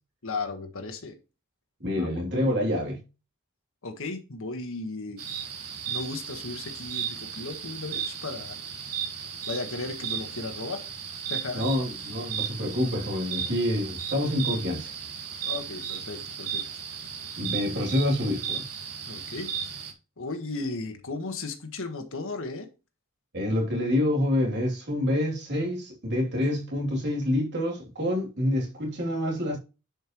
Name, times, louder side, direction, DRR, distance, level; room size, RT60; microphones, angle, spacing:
voice 1, 0.2-1.2 1.9-2.1 3.8-5.2 5.9-8.6 9.5-10.8 11.3-11.6 15.4-16.6 19.1-19.8 20.2-22.7, left 3 dB, 65° left, 1.5 m, -35 dB
voice 2, 1.8-3.0 11.5-14.9 17.4-18.7 23.3-29.6, left 1 dB, 50° right, 3.0 m, -27 dB
sound 1, 5.2-19.9, right 8 dB, 80° right, 1.8 m, -35 dB
10.5 x 5.4 x 3.1 m
head